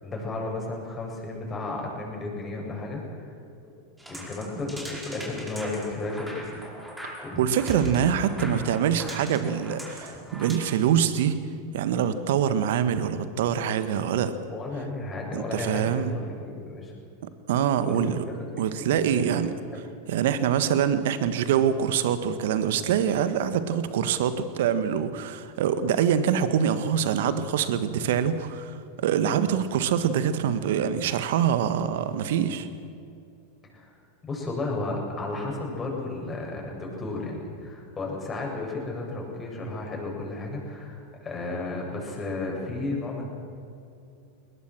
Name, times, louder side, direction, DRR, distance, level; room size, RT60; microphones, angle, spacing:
voice 1, 0.0-3.3 3.6-3.7 4.1-6.5 7.2-7.5 14.5-16.9 17.8-18.9 19.2-19.4 19.7-20.0 33.7-33.9 34.2-43.3, left 2 dB, 20° left, -1 dB, 7.2 m, -33 dB
sound 1, 4.0-10.5, right 1 dB, 5° right, 5.2 m, -39 dB
voice 2, 7.4-11.4 11.7-14.3 15.3-16.2 17.5-18.2 18.6-19.5 20.1-28.7 29.0-32.7, right 8 dB, 65° right, 11 dB, 1.6 m, -24 dB
21.5 x 20.0 x 6.3 m, 2.6 s
hypercardioid pair, 95°, 0 cm